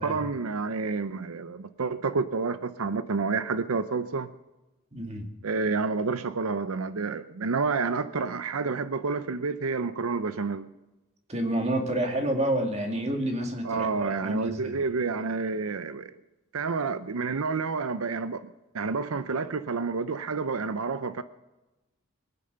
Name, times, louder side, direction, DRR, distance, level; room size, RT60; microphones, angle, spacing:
voice 1, 0.0-4.3 5.4-10.7 13.6-16.1 16.5-21.2, right 4 dB, 85° right, 12 dB, 0.6 m, -29 dB
voice 2, 4.9-5.3 11.3-14.8, right 1 dB, 30° right, 3 dB, 2.2 m, -29 dB
21.5 x 9.5 x 6.7 m, 1.0 s
head